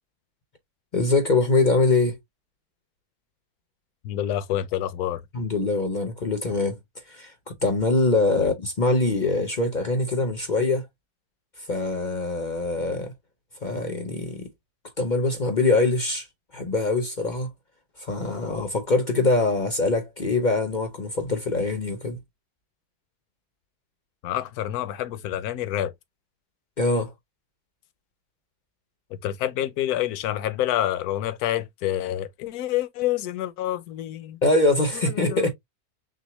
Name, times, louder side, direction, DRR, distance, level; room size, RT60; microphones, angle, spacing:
voice 1, 0.9-2.2 5.3-6.8 7.1-10.9 11.7-13.1 13.6-14.5 15.0-16.3 16.5-17.5 18.0-22.2 26.8-27.1 34.4-35.5, left 3 dB, 45° left, 0.6 m, -23 dB
voice 2, 4.0-5.2 8.4-8.5 24.2-25.9 29.2-34.4 35.1-35.5, left 12 dB, 70° left, 1.1 m, -28 dB
6.2 x 2.1 x 3.0 m
omnidirectional pair, 1.7 m